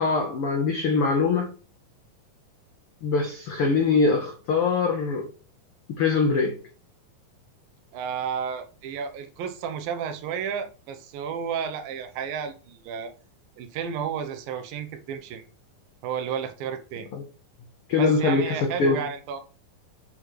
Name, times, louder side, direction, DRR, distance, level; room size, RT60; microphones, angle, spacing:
voice 1, 0.0-1.5 3.0-5.3 6.0-6.6 17.1-17.2 17.9-19.0, left 4 dB, 80° left, 1.2 m, -23 dB
voice 2, 7.9-13.1 13.6-15.4 16.0-17.1 17.9-19.4, right 7 dB, 90° right, 2.7 m, -32 dB
8.7 x 4.9 x 3.2 m
omnidirectional pair, 4.0 m